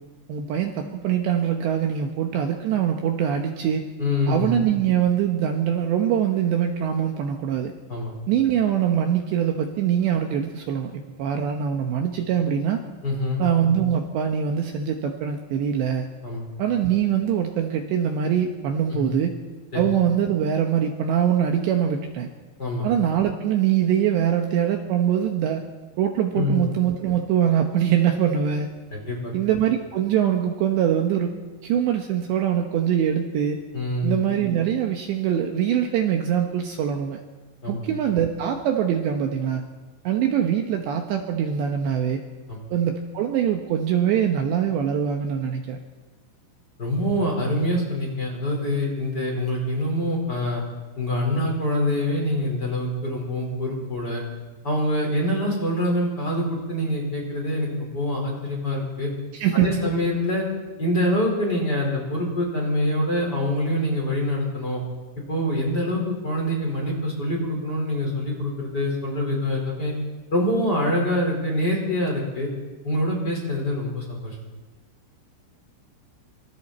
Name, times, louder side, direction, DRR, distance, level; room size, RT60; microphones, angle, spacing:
voice 1, 0.3-3.9 4.3-7.7 8.3-12.8 13.4-16.1 16.6-19.3 19.7-22.3 22.8-25.6 26.0-28.7 29.3-31.3 31.6-33.6 34.0-37.2 37.7-39.6 40.0-42.2 42.7-45.8 59.3-59.7, right 9 dB, 70° right, 3 dB, 3.0 m, -23 dB
voice 2, 4.0-4.5 7.9-8.1 13.0-13.4 16.2-16.4 18.9-19.1 19.7-19.8 22.6-22.9 26.3-26.6 28.9-29.3 33.7-34.2 37.6-37.8 42.5-42.6 46.8-50.6 51.0-54.2 54.6-59.1 59.5-60.5 60.8-64.8 65.3-69.9 70.3-72.5 72.8-74.3, left 1 dB, 20° left, -1 dB, 4.9 m, -25 dB
26.0 x 25.5 x 4.4 m, 1.2 s
omnidirectional pair, 5.9 m